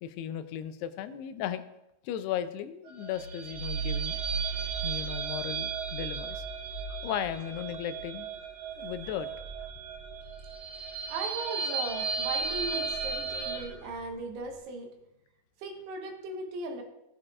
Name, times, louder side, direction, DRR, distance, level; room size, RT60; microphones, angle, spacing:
voice 1, 0.0-1.6 2.0-4.2 4.8-6.4 6.9-8.3 8.8-9.7 13.6-13.7, left 10 dB, 85° left, 11 dB, 2.7 m, -36 dB
sound 1, 2.9-13.7, right 5 dB, 70° right, 4.0 m, -36 dB
sound 2, 3.1-11.4 11.8-14.4, right 5 dB, 30° right, 2.5 m, -40 dB
voice 2, 11.1-14.9 15.6-16.8, right 3 dB, 90° right, 2 dB, 3.5 m, -38 dB
16.5 x 8.7 x 2.5 m, 0.88 s
omnidirectional pair, 4.6 m